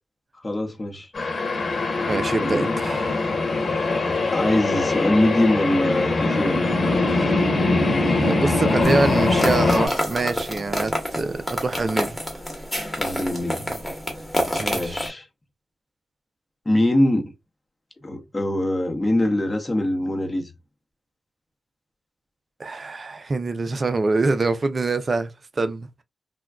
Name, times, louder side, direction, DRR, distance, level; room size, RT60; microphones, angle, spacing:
voice 1, 0.3-1.1 2.4-2.7 4.3-6.9 13.0-13.7 14.1-14.2 14.7-15.3 16.6-17.3 18.0-20.5, left 1 dB, 25° left, 0.8 m, -23 dB
sound 1, 1.1-9.9, left 3 dB, 50° left, 1.2 m, -22 dB
voice 2, 2.1-3.3 8.1-12.2 14.6-15.0 22.6-25.9, right 3 dB, 45° right, 0.5 m, -25 dB
sound 2, 8.8-15.1, equal, 5° left, 1.2 m, -28 dB
3.4 x 2.2 x 2.3 m
cardioid pair, 70°, 0 cm